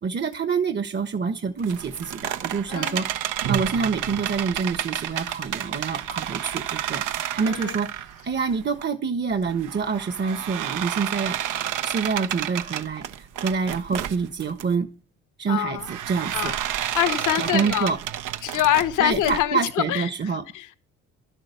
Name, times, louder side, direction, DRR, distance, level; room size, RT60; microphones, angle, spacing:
voice 1, 0.0-3.1 3.5-11.4 11.8-14.9 15.4-16.5 17.4-18.0 19.0-20.4, right 5 dB, 35° right, 1.2 m, -27 dB
sound 1, 1.6-8.8 9.3-14.6 15.8-19.4, right 11 dB, 70° right, 1.0 m, -30 dB
voice 2, 2.7-3.0 7.4-7.8 15.5-15.9 16.3-16.6 16.9-17.9 18.4-20.8, left 12 dB, 70° left, 1.1 m, -25 dB
11.5 x 8.9 x 6.8 m
supercardioid pair, 65°, 32 cm